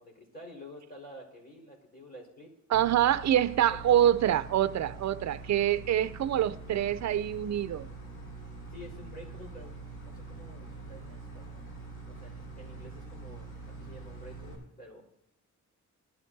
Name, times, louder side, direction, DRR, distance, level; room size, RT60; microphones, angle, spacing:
voice 1, 0.0-2.5 2.9-3.0 3.7-3.8 8.7-9.7 10.0-11.6 12.1-15.0, equal, 30° left, 4.8 m, -49 dB
sound 1, 2.7-14.5, right 3 dB, 85° left, 5.4 m, -44 dB
voice 2, 2.7-7.9, right 11 dB, 65° right, 0.6 m, -26 dB
21.0 x 12.5 x 2.8 m
wide cardioid pair, 115°, 30 cm